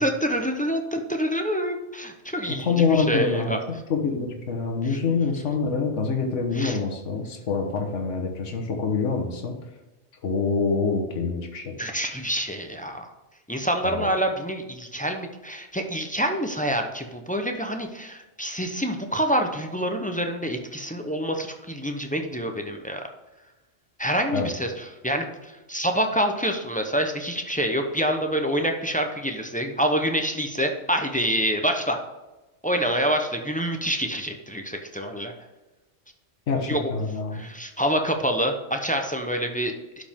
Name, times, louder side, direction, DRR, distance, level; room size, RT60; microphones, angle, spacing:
voice 1, 0.0-3.6 4.9-5.2 6.5-6.8 11.8-13.1 13.5-23.0 24.0-32.0 32.6-35.3 36.7-36.9 37.3-40.0, equal, 10° left, 4 dB, 0.6 m, -27 dB
voice 2, 2.5-3.6 3.9-9.6 10.2-11.7 13.8-14.1 24.3-24.5 36.5-37.4, left 5 dB, 75° left, 2 dB, 1.5 m, -26 dB
11.5 x 5.1 x 3.6 m, 1.1 s
omnidirectional pair, 1.3 m